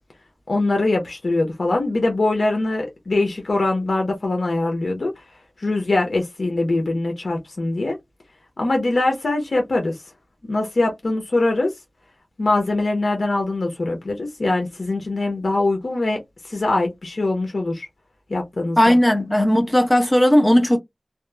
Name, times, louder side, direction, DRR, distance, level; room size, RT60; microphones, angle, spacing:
voice 1, 0.5-5.1 5.6-8.0 8.6-10.0 10.5-11.7 12.4-17.9 18.3-19.0, left 2 dB, 85° left, 0.7 m, -22 dB
voice 2, 18.8-20.8, equal, 20° left, 0.8 m, -16 dB
2.7 x 2.0 x 2.2 m
wide cardioid pair, 50°, 0 cm